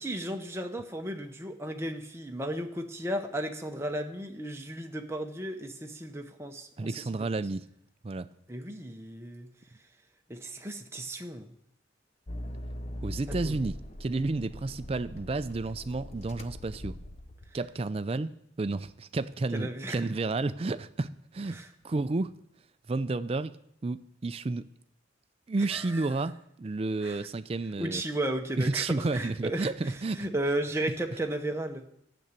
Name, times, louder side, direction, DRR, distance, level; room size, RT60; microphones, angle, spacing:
voice 1, 0.0-6.9 8.5-9.5 10.3-11.5 13.3-13.6 19.5-20.0 21.5-21.7 25.7-26.1 27.0-27.2 27.8-28.9 29.1-29.7 30.2-31.8, right 1 dB, 15° right, 4 dB, 0.8 m, -34 dB
voice 2, 6.8-7.7 8.0-8.3 13.0-17.0 17.5-21.6 21.8-22.3 22.9-23.6 23.8-24.6 25.5-28.0 28.6-30.3, right 3 dB, 30° right, 14 dB, 0.3 m, -31 dB
Accelerating revving vroom, 12.3-17.7, left 1 dB, 35° left, 0.7 m, -41 dB
9.1 x 7.0 x 8.2 m, 0.75 s
head